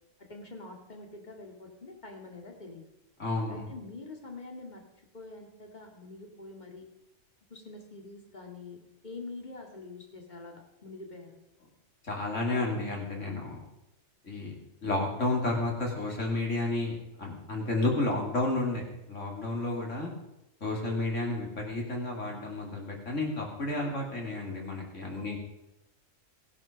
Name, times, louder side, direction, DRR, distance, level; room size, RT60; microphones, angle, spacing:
voice 1, 0.3-2.8 3.5-4.8 5.1-6.8 7.5-11.3 19.8-20.1 25.2-25.4, left 3 dB, 35° left, 1 dB, 2.3 m, -45 dB
voice 2, 3.2-3.7 12.0-13.5 14.3-14.5 14.8-20.1 20.6-25.4, left 2 dB, 70° left, 0 dB, 3.3 m, -31 dB
15.5 x 11.5 x 5.2 m, 0.89 s
omnidirectional pair, 1.3 m